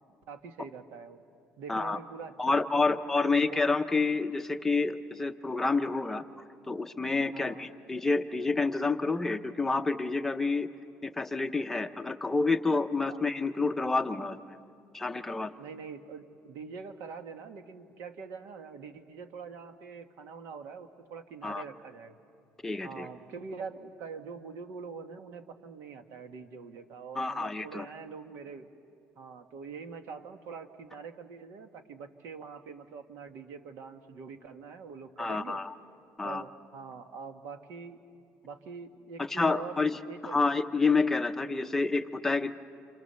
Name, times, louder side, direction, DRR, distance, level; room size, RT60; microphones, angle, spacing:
voice 1, 0.3-1.2 1.6-3.6 7.3-7.7 13.1-13.2 15.6-22.2 22.8-28.7 29.2-35.6 36.2-38.1 38.4-40.6, right 5 dB, 70° right, 7 dB, 1.7 m, -44 dB
voice 2, 2.4-10.7 11.0-14.4 14.9-15.5 21.4-21.6 22.6-23.1 27.2-27.9 35.2-35.7 36.2-36.4 39.2-40.0 40.2-42.5, left 3 dB, 10° left, 6 dB, 0.7 m, -29 dB
29.0 x 28.0 x 7.0 m, 2.5 s
cardioid pair, 170°, 4 cm